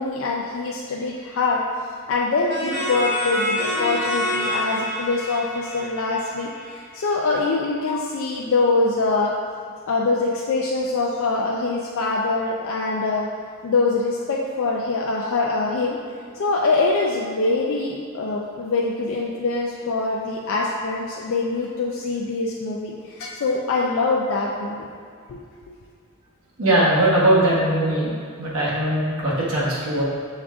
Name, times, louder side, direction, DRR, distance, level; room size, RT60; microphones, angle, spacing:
voice 1, 0.0-1.6 2.1-9.3 9.9-13.3 13.6-16.0 16.3-24.8 25.3-25.4, left 3 dB, 60° left, -2 dB, 0.4 m, -24 dB
sound 1, 2.5-7.1, equal, 45° left, 1.0 m, -27 dB
voice 2, 26.6-28.1 28.4-30.0, right 1 dB, 80° right, -6 dB, 1.2 m, -20 dB
6.3 x 2.4 x 3.5 m, 2.2 s
head